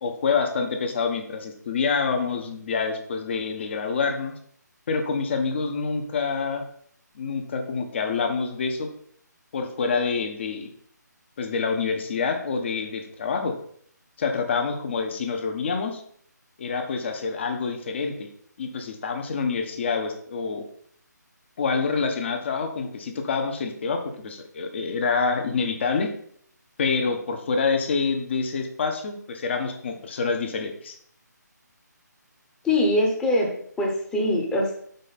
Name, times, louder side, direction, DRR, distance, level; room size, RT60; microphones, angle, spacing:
voice 1, 0.0-4.3 4.9-6.7 7.1-8.9 9.5-10.7 11.4-13.5 14.2-16.0 16.6-18.3 18.6-20.6 21.6-26.1 26.8-31.0, left 5 dB, 40° left, 5 dB, 1.0 m, -27 dB
voice 2, 32.6-34.7, left 1 dB, 5° left, -1 dB, 0.9 m, -23 dB
5.3 x 4.9 x 4.1 m, 0.63 s
figure-of-eight pair, 150°, 10 cm